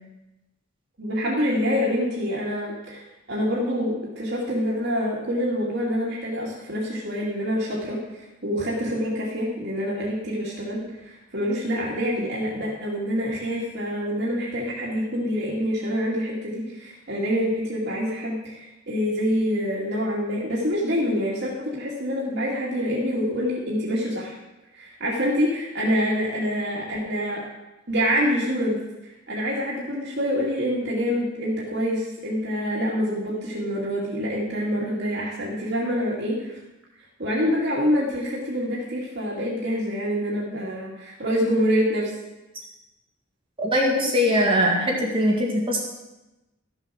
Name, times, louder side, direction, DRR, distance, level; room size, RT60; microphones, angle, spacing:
voice 1, 1.0-3.0 3.3-24.3 24.8-27.5 27.9-28.8 29.3-36.5 37.2-42.1, equal, 55° right, -5 dB, 2.5 m, -26 dB
voice 2, 43.6-45.8, equal, 25° right, -2 dB, 1.9 m, -21 dB
14.0 x 7.2 x 6.3 m, 1.0 s
head